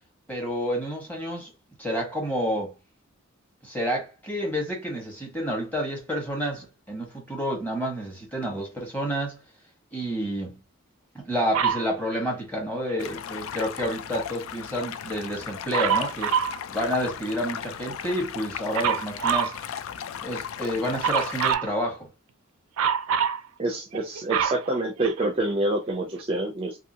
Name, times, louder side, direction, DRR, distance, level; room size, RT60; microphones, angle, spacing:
voice 1, 0.3-1.5 1.8-2.7 3.6-9.4 9.9-10.6 11.1-16.4 16.7-19.5 20.2-22.1, equal, 10° left, 1.2 m, -29 dB
Dog, 11.5-11.9 15.7-16.6 18.7-19.6 21.0-21.7 22.8-23.4 23.9-25.5 26.2-26.3, right 7 dB, 85° right, 0.4 m, -25 dB
Stream, 13.0-21.5, left 8 dB, 70° left, 0.3 m, -36 dB
voice 2, 23.6-26.8, right 2 dB, 25° right, 0.5 m, -27 dB
2.7 x 2.7 x 2.7 m
head